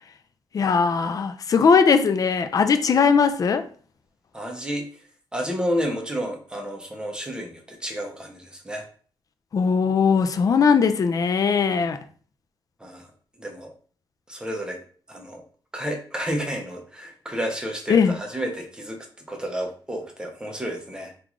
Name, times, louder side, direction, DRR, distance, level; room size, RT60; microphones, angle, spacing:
voice 1, 0.5-3.7 9.5-12.0 17.9-18.2, left 5 dB, 40° left, 0.3 m, -19 dB
voice 2, 4.3-4.9 5.3-8.9 12.8-13.1 13.4-13.7 14.3-14.8 15.1-15.4 15.7-21.1, equal, 10° right, 0.7 m, -31 dB
3.7 x 2.4 x 2.9 m
wide cardioid pair, 130°, 9 cm